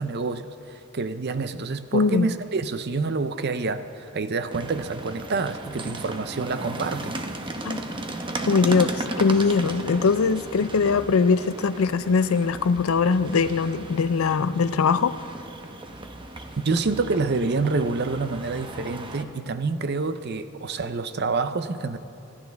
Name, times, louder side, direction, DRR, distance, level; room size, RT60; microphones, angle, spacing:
voice 1, 0.0-7.2 16.6-22.0, right 3 dB, 50° right, 11 dB, 0.6 m, -27 dB
voice 2, 1.9-2.3 7.6-7.8 8.5-15.2, left 5 dB, 85° left, 14 dB, 0.5 m, -21 dB
sound 1, 4.5-19.2, right 2 dB, 25° right, 0.9 m, -35 dB
25.0 x 14.5 x 3.5 m, 2.7 s
head